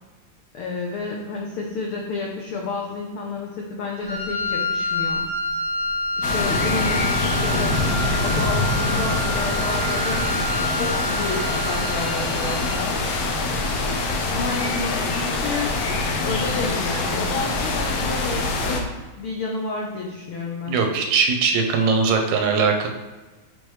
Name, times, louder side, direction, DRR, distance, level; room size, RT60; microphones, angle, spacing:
voice 1, 0.5-5.2 6.2-7.7 8.2-10.3 10.7-13.0 14.3-15.7 16.2-20.8, left 3 dB, 90° left, -1 dB, 1.1 m, -30 dB
Wind instrument woodwind instrument, 4.0-12.9, equal, 55° left, 2.6 m, -28 dB
sound 1, 6.2-18.8, left 3 dB, 70° left, 1.6 m, -24 dB
voice 2, 20.7-22.9, right 5 dB, 85° right, 4 dB, 2.1 m, -20 dB
7.7 x 4.4 x 3.2 m, 1.2 s
omnidirectional pair, 3.3 m